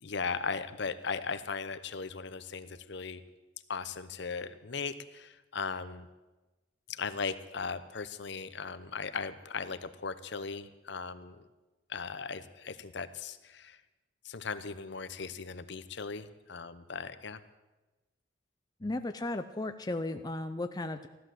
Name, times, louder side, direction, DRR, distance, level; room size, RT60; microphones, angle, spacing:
voice 1, 0.0-3.2 3.7-6.1 6.9-11.4 11.9-13.8 14.2-17.4, left 5 dB, 60° left, 12 dB, 0.8 m, -38 dB
voice 2, 18.8-21.1, left 2 dB, 20° left, 8 dB, 0.5 m, -35 dB
15.5 x 12.0 x 7.7 m, 1.1 s
head